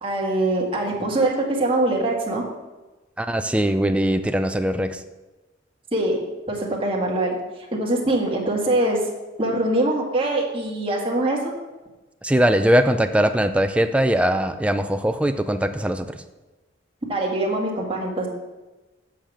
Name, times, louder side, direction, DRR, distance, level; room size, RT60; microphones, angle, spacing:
voice 1, 0.0-2.4 5.9-6.2 6.5-7.4 7.7-9.0 9.4-11.5 17.1-18.3, right 1 dB, 30° right, -1 dB, 1.7 m, -23 dB
voice 2, 3.2-5.0 12.2-16.2, equal, 5° right, 8 dB, 0.4 m, -21 dB
7.9 x 5.1 x 7.4 m, 1.1 s
head